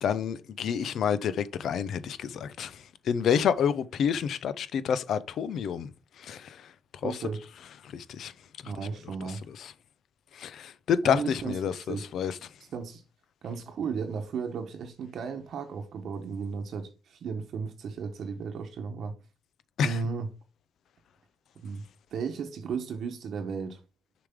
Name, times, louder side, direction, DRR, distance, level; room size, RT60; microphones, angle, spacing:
voice 1, 0.0-2.7 3.1-5.9 6.2-6.5 7.0-7.1 7.9-8.3 10.4-12.3 19.8-19.9, left 8 dB, 70° left, 0.6 m, -28 dB
voice 2, 7.0-7.5 8.6-9.5 11.0-12.1 12.7-13.0 13.4-19.2 19.8-20.4 21.6-21.8 22.1-23.8, right 5 dB, 65° right, 1.0 m, -35 dB
6.8 x 5.0 x 3.6 m
cardioid pair, 90°, 0 cm